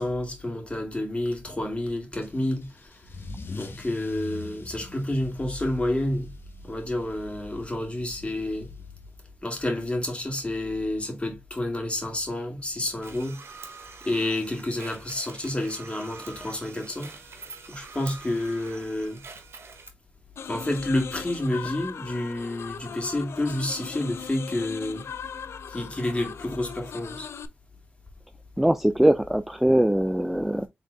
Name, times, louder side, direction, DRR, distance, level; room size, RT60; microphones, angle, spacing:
voice 1, 0.0-2.9 3.5-6.3 6.6-8.7 9.4-13.4 14.0-17.2 17.7-19.2 20.4-25.0 25.7-27.3, left 1 dB, 25° left, 2.3 m, -29 dB
Car / Engine starting / Accelerating revving vroom, 2.2-9.4, left 3 dB, 60° left, 1.3 m, -43 dB
sound 1, 13.0-19.9, right 5 dB, 70° right, 1.0 m, -45 dB
sound 2, 20.3-27.5, left 7 dB, 75° left, 0.4 m, -39 dB
voice 2, 28.6-30.7, right 1 dB, 5° right, 0.4 m, -21 dB
4.1 x 3.6 x 3.4 m
cardioid pair, 45°, 4 cm